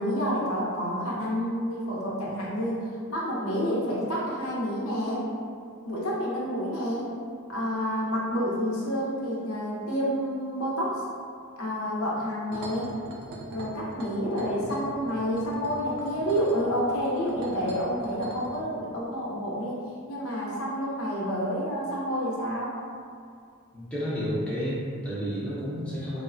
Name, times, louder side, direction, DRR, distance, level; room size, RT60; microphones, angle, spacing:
voice 1, 0.0-5.3 5.8-7.1 7.5-11.0 11.6-12.9 13.5-22.8, equal, 70° left, -5 dB, 0.6 m, -29 dB
sound 1, 12.5-18.6, right 2 dB, 85° right, 0.4 m, -41 dB
voice 2, 23.7-26.2, equal, 5° left, -9 dB, 0.5 m, -31 dB
3.0 x 2.1 x 2.5 m, 2.3 s
head